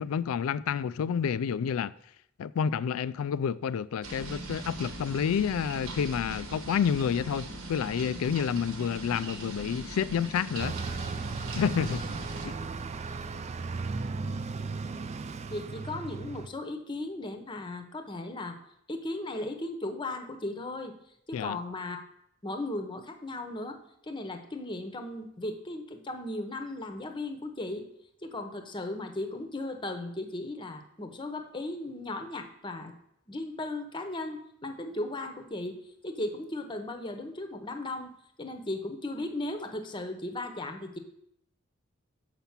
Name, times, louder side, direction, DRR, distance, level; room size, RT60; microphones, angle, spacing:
voice 1, 0.0-1.9 2.4-10.8 11.6-12.0 12.4-12.5 21.3-21.6, left 7 dB, 80° left, 0.3 m, -29 dB
sound 1, 4.0-12.5, right 2 dB, 75° right, 1.2 m, -40 dB
Bus, 10.6-16.5, right 4 dB, 30° right, 0.4 m, -36 dB
voice 2, 15.5-18.6 18.9-20.9 21.3-22.0 22.4-23.8 24.0-27.9 28.2-32.9 33.3-38.1 38.4-41.0, left 2 dB, 25° left, 0.8 m, -36 dB
6.8 x 5.8 x 7.2 m
head